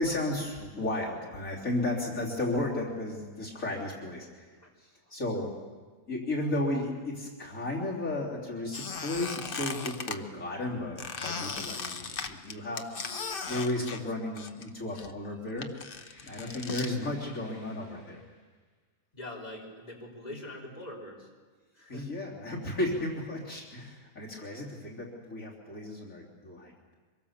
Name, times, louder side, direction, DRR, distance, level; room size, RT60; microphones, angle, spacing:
voice 1, 0.0-5.5 6.1-15.7 16.2-18.2 21.9-26.9, left 1 dB, 65° left, -3 dB, 3.7 m, -34 dB
Squeak, 8.7-10.2 11.0-14.7 15.0-16.9, left 5 dB, 45° left, 1.1 m, -37 dB
sound 1, 15.8-18.6, left 1 dB, 90° left, 5.8 m, -57 dB
voice 2, 19.1-21.3 21.7-22.1, left 1 dB, 25° left, -3 dB, 4.1 m, -43 dB
25.0 x 22.5 x 7.2 m, 1.4 s
omnidirectional pair, 1.5 m